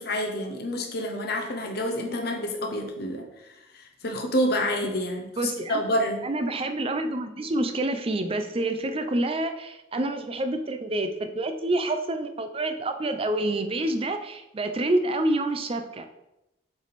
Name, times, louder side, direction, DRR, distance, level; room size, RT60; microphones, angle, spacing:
voice 1, 0.0-3.2 3.7-6.2, equal, 60° left, 3 dB, 0.9 m, -28 dB
voice 2, 5.4-5.8 6.2-16.0, right 2 dB, 30° right, 8 dB, 0.5 m, -27 dB
7.1 x 3.4 x 4.1 m, 0.91 s
head